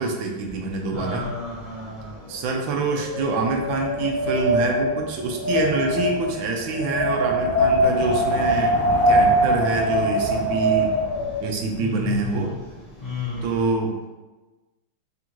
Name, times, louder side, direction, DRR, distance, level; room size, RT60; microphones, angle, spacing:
voice 1, 0.0-1.3 2.3-10.9 11.4-12.5 13.4-14.1, right 3 dB, 80° right, 2 dB, 1.3 m, -26 dB
voice 2, 0.9-2.2 11.8-12.4 13.0-13.6, left 4 dB, 25° left, -12 dB, 1.1 m, -31 dB
Wind, 2.3-11.5, equal, 15° right, 1.0 m, -22 dB
3.7 x 3.5 x 2.9 m, 1.2 s
omnidirectional pair, 2.2 m